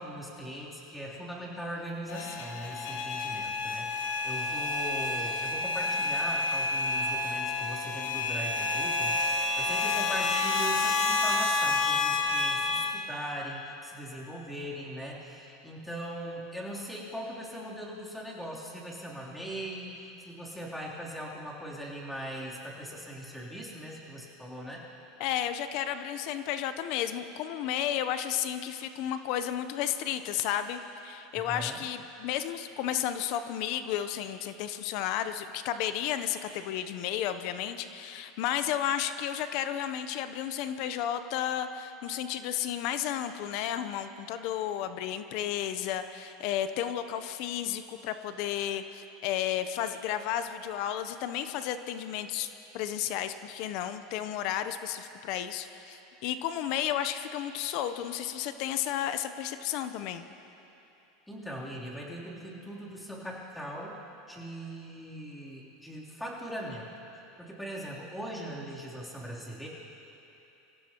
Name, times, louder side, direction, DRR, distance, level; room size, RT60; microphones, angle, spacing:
voice 1, 0.0-24.8 31.3-31.8 61.3-64.0 64.3-66.9 67.4-69.7, equal, 5° left, -5 dB, 3.2 m, -40 dB
sound 1, 2.1-12.9, left 3 dB, 80° left, 1.5 m, -29 dB
voice 2, 25.2-52.5 52.7-60.3, left 10 dB, 60° left, 11 dB, 0.7 m, -32 dB
24.5 x 16.0 x 3.0 m, 3.0 s
supercardioid pair, 110°, 0 cm